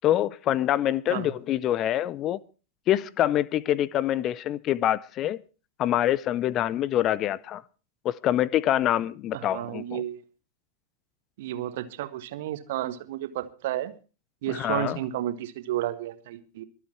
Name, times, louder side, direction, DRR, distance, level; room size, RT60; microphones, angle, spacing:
voice 1, 0.0-2.4 2.9-5.4 5.8-7.6 8.0-10.0 14.5-15.0, left 12 dB, 35° left, 0.6 m, -25 dB
voice 2, 9.3-10.2 11.4-13.9 14.4-16.6, right 13 dB, 55° right, 1.6 m, -32 dB
24.0 x 8.4 x 4.5 m
figure-of-eight pair, 90°, 0 cm